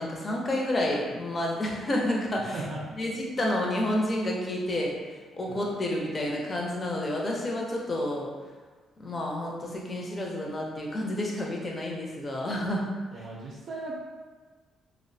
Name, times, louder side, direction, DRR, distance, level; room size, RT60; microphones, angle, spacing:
voice 1, 0.0-2.6 3.0-5.0 5.3-8.3 9.0-12.9 13.1-13.2, left 1 dB, 35° left, -1 dB, 0.5 m, -30 dB
voice 2, 13.1-14.0, right 3 dB, 65° right, -4 dB, 0.4 m, -37 dB
2.5 x 2.1 x 2.6 m, 1.4 s
cardioid pair, 90°, 0 cm